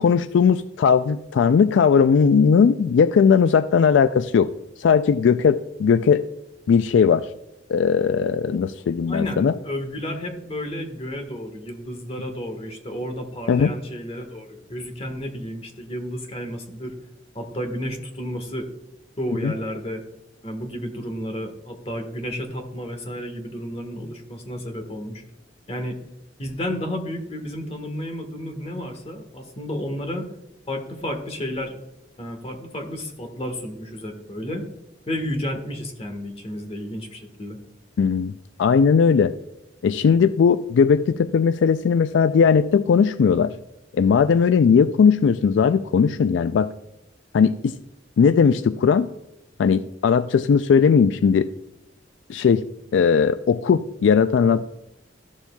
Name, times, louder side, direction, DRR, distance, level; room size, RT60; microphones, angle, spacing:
voice 1, 0.0-4.5 4.8-6.2 6.7-7.3 7.7-9.5 13.5-13.7 19.4-19.5 38.0-38.3 38.6-39.3 39.8-43.5 43.9-46.7 47.3-47.7 48.2-49.1 49.6-51.5 52.3-52.6 52.9-54.7, left 6 dB, 80° left, 13 dB, 0.3 m, -18 dB
voice 2, 9.1-17.0 17.3-18.7 19.2-20.0 20.4-25.2 25.7-26.0 26.4-30.3 30.7-31.8 32.2-34.6 35.1-37.6, equal, 35° left, 5 dB, 1.4 m, -31 dB
13.0 x 7.1 x 2.3 m, 0.88 s
head